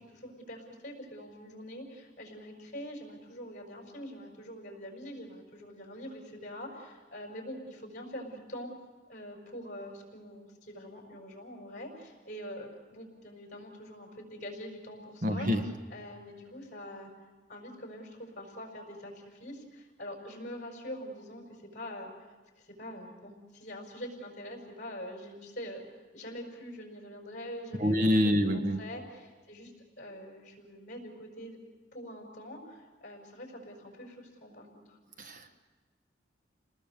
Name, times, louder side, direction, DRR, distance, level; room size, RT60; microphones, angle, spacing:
voice 1, 0.0-8.7 9.1-17.1 17.5-22.1 22.6-25.8 26.1-31.6 31.9-35.0, equal, 45° left, 2 dB, 6.0 m, -44 dB
voice 2, 15.2-15.6 27.8-28.8 35.2-35.6, equal, 45° right, 6 dB, 1.4 m, -26 dB
29.5 x 19.5 x 6.9 m, 1.3 s
head